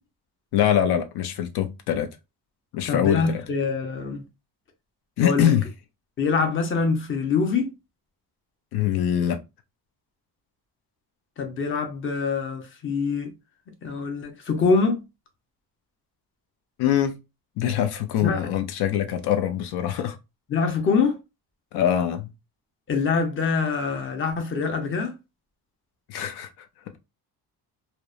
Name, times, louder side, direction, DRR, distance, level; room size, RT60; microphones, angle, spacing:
voice 1, 0.5-2.1 2.7-3.4 5.2-5.6 8.7-9.4 16.8-17.2 17.6-20.2 21.7-22.3 26.1-26.5, left 10 dB, 85° left, 0.5 m, -23 dB
voice 2, 2.9-4.2 5.2-5.5 6.2-7.7 11.4-13.3 13.8-15.0 18.2-18.5 20.5-21.2 22.9-25.1, left 4 dB, 35° left, 0.6 m, -24 dB
2.8 x 2.1 x 2.3 m
cardioid pair, 140°, 38 cm